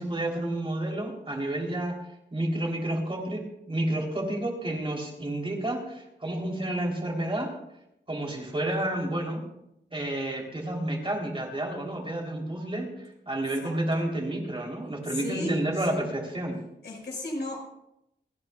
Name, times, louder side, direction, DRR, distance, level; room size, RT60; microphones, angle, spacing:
voice 1, 0.0-2.0 2.3-7.5 8.1-9.4 9.9-16.6, right 1 dB, 30° right, -1 dB, 3.5 m, -30 dB
voice 2, 13.6-14.1 15.1-16.1 16.8-17.6, left 1 dB, 65° left, -1 dB, 5.4 m, -35 dB
29.5 x 10.0 x 2.4 m, 0.82 s
wide cardioid pair, 95°, 19 cm